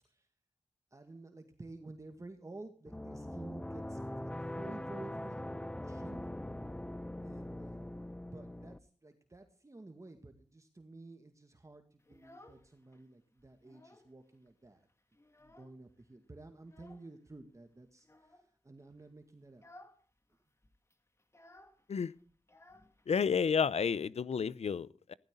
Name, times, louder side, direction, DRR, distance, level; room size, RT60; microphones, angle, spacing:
voice 1, 0.9-6.2 7.2-14.9 15.4-19.6, right 2 dB, 30° right, 2.1 m, -52 dB
sound 1, 2.9-8.8, left 1 dB, 10° left, 0.7 m, -42 dB
Child speech kid speaking, 12.0-13.0 13.4-14.2 14.5-14.6 14.9-16.0 16.6-17.1 18.0-18.5 18.9-19.1 19.5-20.0 20.3-20.4 20.6-23.4, left 1 dB, 25° left, 2.1 m, -59 dB
voice 2, 23.1-25.1, left 6 dB, 75° left, 0.7 m, -31 dB
16.5 x 14.5 x 3.8 m
wide cardioid pair, 75°, 11 cm